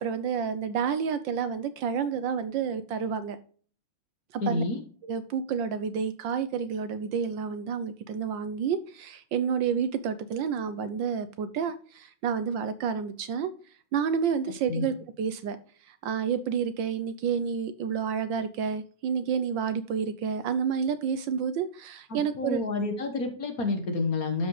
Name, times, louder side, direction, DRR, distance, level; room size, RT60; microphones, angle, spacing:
voice 1, 0.0-3.4 4.3-4.6 5.0-13.5 13.9-15.6 15.8-22.6, right 7 dB, 70° right, 12 dB, 1.3 m, -29 dB
voice 2, 4.4-4.8 14.7-14.9 22.1-24.5, left 3 dB, 45° left, 6 dB, 1.6 m, -29 dB
12.5 x 5.1 x 3.2 m, 0.42 s
omnidirectional pair, 2.3 m